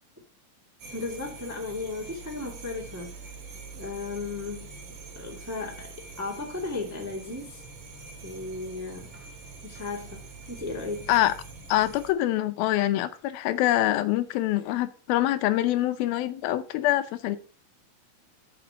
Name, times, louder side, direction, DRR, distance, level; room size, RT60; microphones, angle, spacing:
sound 1, 0.8-12.1, right 4 dB, 65° right, 4.1 m, -44 dB
voice 1, 0.9-3.2 3.7-4.7 5.1-7.6 8.2-9.2 9.6-10.2 10.5-11.1, left 3 dB, 10° right, 1.1 m, -35 dB
voice 2, 11.7-17.4, left 14 dB, 80° left, 2.5 m, -25 dB
7.7 x 7.2 x 5.7 m
omnidirectional pair, 4.4 m